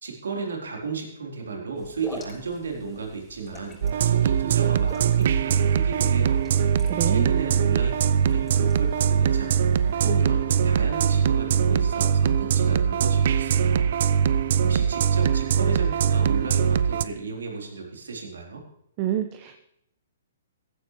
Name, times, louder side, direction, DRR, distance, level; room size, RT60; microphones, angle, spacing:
voice 1, 0.0-3.8 4.0-6.5 7.1-13.9 14.6-18.6, right 4 dB, 80° right, 0 dB, 4.1 m, -34 dB
sound 1, 1.8-9.9, left 2 dB, 15° left, 4.3 m, -46 dB
sound 2, 3.8-17.0, right 7 dB, 60° right, 0.7 m, -22 dB
voice 2, 6.8-7.3 19.0-19.6, right 11 dB, 35° right, 6 dB, 1.2 m, -28 dB
16.0 x 14.0 x 3.3 m, 0.77 s
hypercardioid pair, 130°, 0 cm